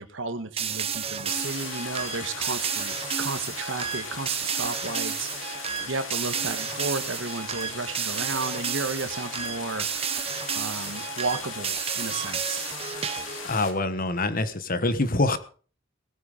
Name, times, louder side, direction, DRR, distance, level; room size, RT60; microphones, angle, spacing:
voice 1, 0.0-9.9 10.5-12.7, right 3 dB, 75° right, 10 dB, 1.6 m, -33 dB
sound 1, 0.6-13.5, right 7 dB, 30° right, 1.0 m, -32 dB
sound 2, 1.3-13.7, left 5 dB, 90° left, 3.0 m, -38 dB
voice 2, 13.4-15.4, left 2 dB, 45° left, 12 dB, 1.3 m, -25 dB
19.0 x 8.9 x 5.1 m, 0.41 s
head